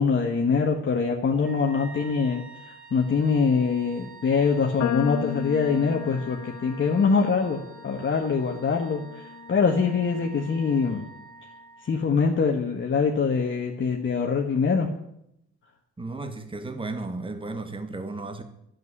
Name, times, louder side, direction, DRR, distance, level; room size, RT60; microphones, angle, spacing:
voice 1, 0.0-9.2 9.5-11.0 11.8-14.9, left 5 dB, 40° left, 1.5 m, -24 dB
Wind instrument woodwind instrument, 1.4-12.2, right 4 dB, 40° right, 2.6 m, -48 dB
sound 1, 4.8-11.1, left 12 dB, 70° left, 0.6 m, -37 dB
voice 2, 16.0-18.4, right 2 dB, 15° right, 1.4 m, -34 dB
10.5 x 8.0 x 9.7 m
cardioid pair, 90°, 30 cm